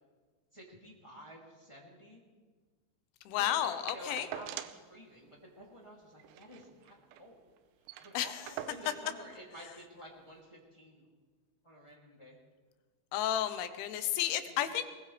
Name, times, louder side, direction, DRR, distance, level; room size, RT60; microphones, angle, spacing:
voice 1, 0.5-2.2 3.4-7.5 8.0-11.1 11.6-12.4, equal, 15° left, -3 dB, 1.0 m, -51 dB
voice 2, 3.3-4.3 8.1-8.4 13.1-14.9, left 11 dB, 80° left, 10 dB, 3.2 m, -32 dB
sound 1, 3.6-4.9 5.2-5.3 5.6-5.8 6.2-7.3 7.6-7.7 7.9-9.1 10.0-10.1, right 11 dB, 80° right, 2.6 m, -45 dB
21.5 x 20.0 x 3.3 m, 1.4 s
omnidirectional pair, 5.4 m